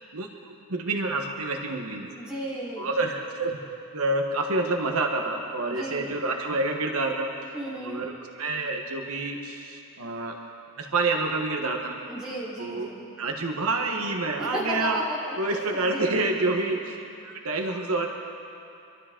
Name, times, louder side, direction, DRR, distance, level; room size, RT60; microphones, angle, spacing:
voice 1, 0.1-2.1 2.8-3.6 3.9-7.3 7.8-10.4 10.8-12.0 12.6-12.9 13.2-15.0 15.4-18.1, right 2 dB, 75° right, 2 dB, 1.2 m, -28 dB
voice 2, 2.2-2.9 5.6-6.1 7.5-8.0 12.1-13.0 14.4-16.8, equal, 5° right, -8 dB, 3.8 m, -34 dB
25.0 x 12.5 x 3.7 m, 2.7 s
head